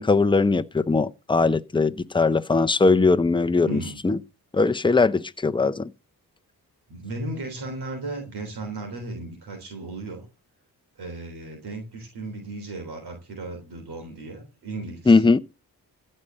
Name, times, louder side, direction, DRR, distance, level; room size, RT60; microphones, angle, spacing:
voice 1, 0.0-4.2 4.5-5.9 15.1-15.4, left 3 dB, 15° left, 0.7 m, -20 dB
voice 2, 3.6-4.0 6.9-10.2 11.0-15.1, right 2 dB, 80° right, 3.7 m, -35 dB
14.5 x 5.5 x 7.6 m
cardioid pair, 60°, 39 cm